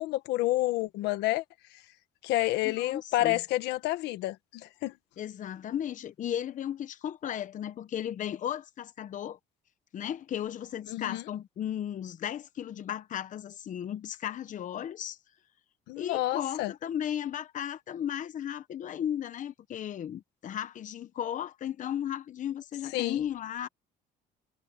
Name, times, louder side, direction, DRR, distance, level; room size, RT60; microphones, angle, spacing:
voice 1, 0.0-1.4 2.2-4.9 10.9-11.2 15.9-16.7 22.9-23.2, left 17 dB, 90° left, 1.4 m, -29 dB
voice 2, 2.6-3.4 5.2-9.4 9.9-15.2 16.0-23.7, left 10 dB, 50° left, 1.0 m, -35 dB
cardioid pair, 110°, 17 cm